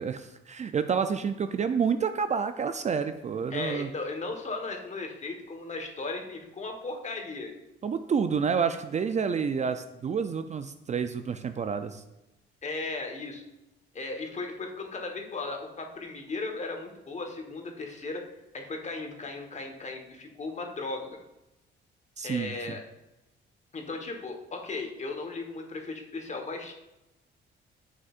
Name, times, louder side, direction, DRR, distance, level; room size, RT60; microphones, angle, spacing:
voice 1, 0.0-3.9 7.8-12.0 22.2-22.5, right 6 dB, 35° right, 9 dB, 0.4 m, -29 dB
voice 2, 3.5-7.5 12.6-13.4 13.9-18.2 18.5-21.2 22.2-22.8 23.7-26.7, left 3 dB, 35° left, 3 dB, 1.3 m, -36 dB
9.1 x 6.5 x 2.5 m, 0.95 s
cardioid pair, 90°, 20 cm